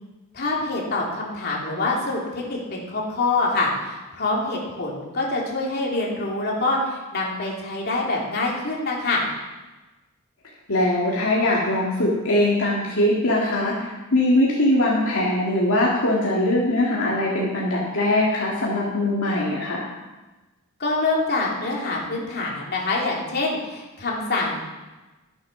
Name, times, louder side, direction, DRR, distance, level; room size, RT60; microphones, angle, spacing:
voice 1, 0.3-9.3 20.8-24.7, left 2 dB, 50° left, -3 dB, 2.9 m, -25 dB
voice 2, 10.7-19.8, left 1 dB, 65° left, -5 dB, 2.2 m, -21 dB
12.0 x 8.4 x 5.9 m, 1.1 s
head